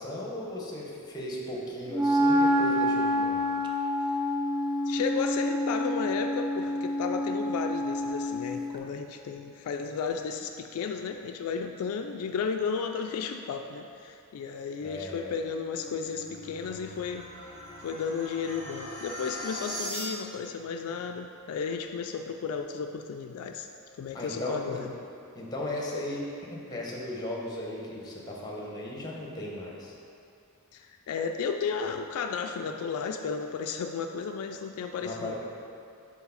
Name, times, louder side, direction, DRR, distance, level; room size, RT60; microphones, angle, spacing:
voice 1, 0.0-3.4 14.8-15.4 24.1-24.9 25.3-29.9 35.0-35.3, left 1 dB, 20° left, -3 dB, 0.9 m, -36 dB
Wind instrument woodwind instrument, 1.9-8.6, left 1 dB, 20° right, 0.4 m, -27 dB
voice 2, 4.9-17.3 17.8-23.7 24.0-24.9 30.7-35.3, left 5 dB, 75° left, 5 dB, 0.3 m, -33 dB
sound 1, 15.5-20.5, equal, 70° right, 1.4 m, -40 dB
4.7 x 4.1 x 5.6 m, 2.6 s
head